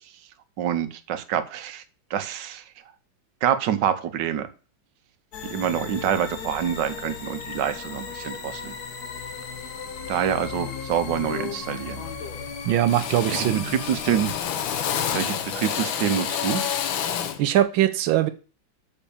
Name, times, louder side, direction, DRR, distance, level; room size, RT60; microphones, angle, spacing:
voice 1, 0.6-1.8 2.1-2.6 3.4-4.5 5.4-8.7 10.1-12.0 13.4-14.3 15.1-16.6, right 9 dB, 70° right, 1.6 m, -26 dB
sound 1, 5.3-14.4, left 6 dB, 55° left, 1.7 m, -36 dB
Drill, 10.6-10.8 11.2-11.7 12.0-12.5 12.9-17.5, left 9 dB, 80° left, 1.7 m, -29 dB
voice 2, 12.6-13.7 17.4-18.3, right 12 dB, 90° right, 1.5 m, -21 dB
7.0 x 5.5 x 7.0 m
omnidirectional pair, 2.1 m